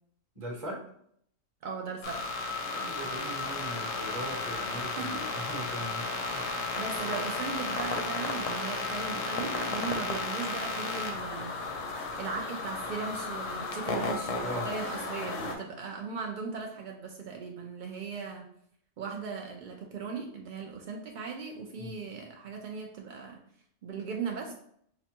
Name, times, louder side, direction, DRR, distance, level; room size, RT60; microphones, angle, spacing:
voice 1, 0.3-0.8 2.7-6.5 14.4-14.7 15.2-15.5 21.8-21.9, right 1 dB, 30° right, -1 dB, 0.8 m, -40 dB
voice 2, 1.6-2.2 5.0-5.2 6.8-11.5 12.2-18.5 19.0-23.4 23.8-24.5, right 5 dB, 75° right, 1 dB, 0.4 m, -38 dB
sound 1, 2.0-15.6, left 3 dB, 75° left, 1.0 m, -34 dB
4.8 x 2.2 x 2.8 m, 0.67 s
omnidirectional pair, 1.4 m